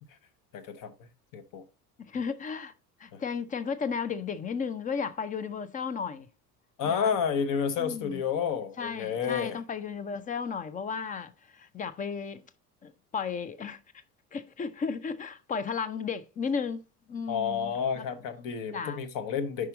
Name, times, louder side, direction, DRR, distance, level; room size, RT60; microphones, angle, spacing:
voice 1, 0.5-0.9 1.3-1.6 6.8-9.6 17.3-19.7, left 7 dB, 45° left, 1.0 m, -30 dB
voice 2, 2.1-2.7 3.0-6.3 6.8-7.1 7.8-8.2 8.8-12.5 12.8-14.0 14.3-16.8 17.1-18.0 18.7-19.0, left 6 dB, 20° left, 0.5 m, -34 dB
5.5 x 4.8 x 3.9 m
figure-of-eight pair, 65°, 48 cm